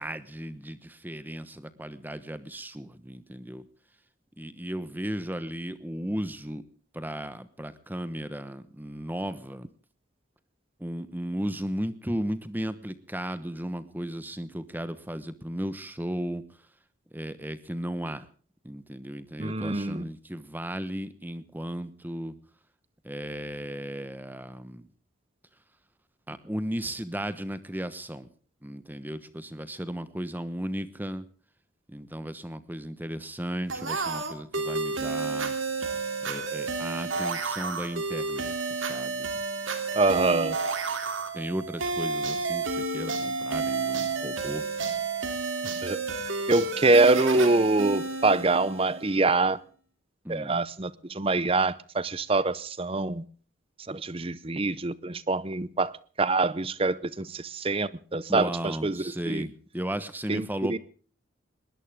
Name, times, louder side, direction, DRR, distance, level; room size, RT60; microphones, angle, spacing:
voice 1, 0.0-3.7 4.4-6.6 6.9-9.7 10.8-16.4 17.1-18.3 18.6-22.3 23.0-24.9 26.3-28.3 28.6-31.3 31.9-35.8 36.2-39.3 41.3-44.6 50.2-50.6 58.3-60.8, equal, 10° right, 1.1 m, -35 dB
voice 2, 19.4-20.1 39.9-40.6 45.8-46.0 46.5-49.6 50.3-53.2 53.9-55.9 56.2-59.5 60.3-60.8, right 3 dB, 30° right, 0.7 m, -25 dB
sound 1, 33.7-49.2, right 4 dB, 75° right, 3.1 m, -31 dB
20.5 x 19.0 x 3.6 m
head